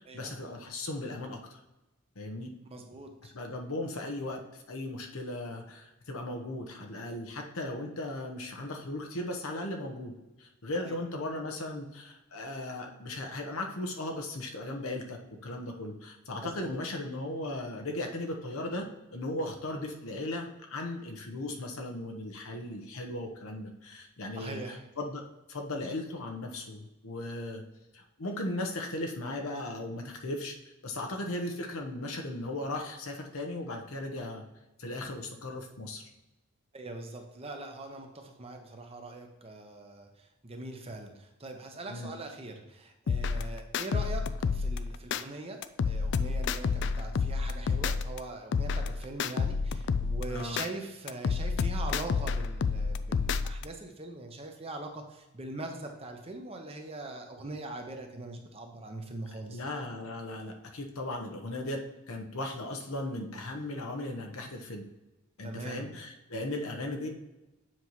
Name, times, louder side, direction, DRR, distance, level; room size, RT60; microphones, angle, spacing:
voice 1, 0.0-1.6 2.2-2.5 3.3-25.2 25.5-27.6 27.9-30.5 30.8-34.4 34.8-36.0 41.9-42.1 50.3-50.6 59.5-61.8 62.1-64.8 65.4-67.1, left 1 dB, 90° left, 2 dB, 1.0 m, -37 dB
voice 2, 2.7-3.3 10.8-11.0 16.4-16.8 24.3-24.8 36.7-59.6 65.4-65.8, right 2 dB, 30° right, 4 dB, 0.9 m, -42 dB
sound 1, 43.1-45.2 45.6-48.2 48.5-50.7 51.1-53.6, left 5 dB, 60° left, 0.3 m, -30 dB
7.6 x 5.5 x 3.1 m, 1.0 s
head